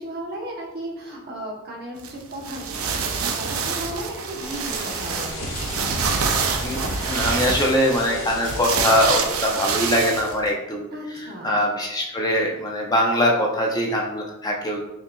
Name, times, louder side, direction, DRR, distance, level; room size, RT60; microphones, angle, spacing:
voice 1, 0.0-5.5 10.9-11.6, right 1 dB, 50° right, -2 dB, 1.0 m, -35 dB
sound 1, 2.0-10.4, right 5 dB, 85° right, 0.5 m, -26 dB
sound 2, 4.4-9.5, left 2 dB, 70° left, 1.4 m, -36 dB
voice 2, 7.1-10.9 11.4-14.8, equal, 20° left, -1 dB, 0.6 m, -22 dB
5.5 x 2.7 x 2.3 m, 0.95 s
head